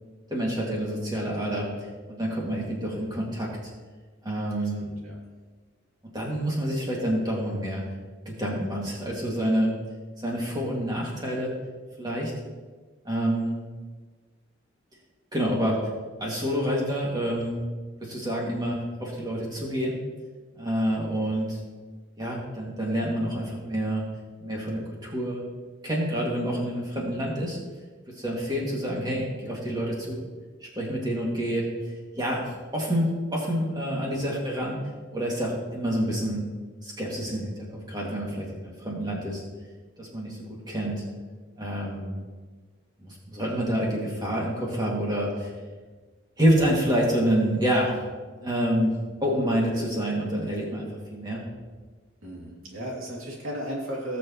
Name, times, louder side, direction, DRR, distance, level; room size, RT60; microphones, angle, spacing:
voice 1, 0.3-1.7 2.1-3.5 4.2-5.0 6.1-7.8 8.3-9.7 10.2-11.5 12.0-12.3 13.0-13.6 15.3-15.8 16.2-17.6 18.0-20.0 20.6-21.6 22.2-24.0 24.4-25.4 25.8-27.6 28.2-30.3 30.8-31.6 32.2-32.4 32.7-34.8 35.1-36.4 36.8-37.5 37.9-39.4 40.0-40.4 40.7-41.0 41.6-42.1 43.0-45.5 46.4-47.9 48.4-48.9 49.2-51.4, equal, 20° right, -3 dB, 2.3 m, -27 dB
voice 2, 4.8-5.2 52.2-54.2, right 1 dB, 90° right, -3 dB, 2.8 m, -35 dB
19.0 x 6.3 x 3.1 m, 1.4 s
head